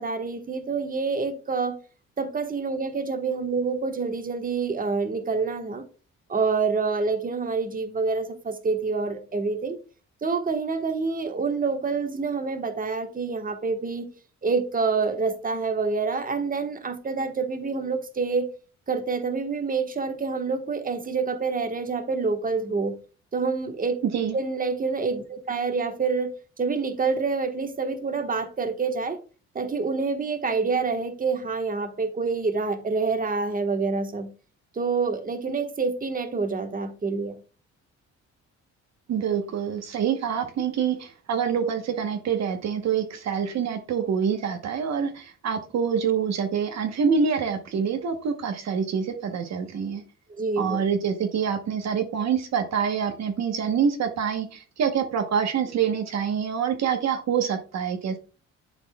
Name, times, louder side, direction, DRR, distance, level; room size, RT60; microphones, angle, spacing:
voice 1, 0.0-1.8 2.2-5.8 6.3-9.8 10.2-14.1 14.4-18.5 18.9-22.9 23.3-24.0 24.3-29.2 29.5-34.3 34.7-37.3 50.4-50.8, right 4 dB, 30° right, 1.3 m, -27 dB
voice 2, 39.1-50.0 50.6-58.2, right 7 dB, 60° right, 1.0 m, -26 dB
11.5 x 4.2 x 2.2 m
cardioid pair, 90°, 30 cm